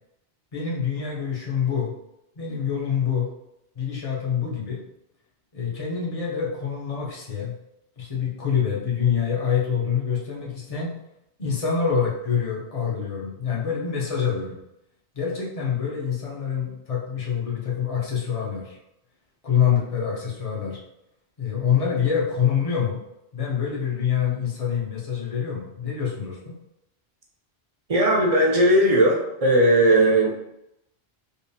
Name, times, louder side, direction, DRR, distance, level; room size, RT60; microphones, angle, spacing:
voice 1, 0.5-1.9 2.4-3.3 3.8-4.8 5.5-7.5 8.0-10.9 11.4-14.6 15.2-18.8 19.4-20.8 21.4-23.0 23.3-26.5, left 7 dB, 40° left, -4 dB, 0.8 m, -26 dB
voice 2, 27.9-30.4, right 1 dB, 40° right, -2 dB, 0.7 m, -18 dB
5.2 x 2.0 x 2.7 m, 0.84 s
omnidirectional pair, 1.1 m